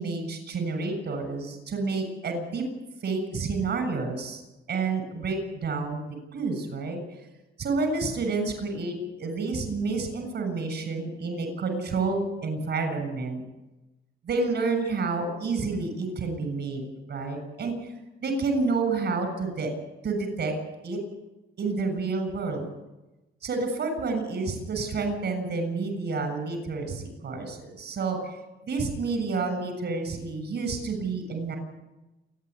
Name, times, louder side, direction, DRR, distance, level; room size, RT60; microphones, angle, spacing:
voice 1, 0.0-2.6 3.0-4.4 4.7-6.0 6.3-7.0 7.6-13.4 14.3-16.8 17.1-17.7 18.2-19.7 20.0-20.5 20.8-21.0 21.6-22.7 23.4-28.4 28.6-31.6, right 3 dB, 55° right, 7 dB, 7.2 m, -29 dB
28.0 x 10.0 x 9.7 m, 1.0 s
cardioid pair, 90°, 20 cm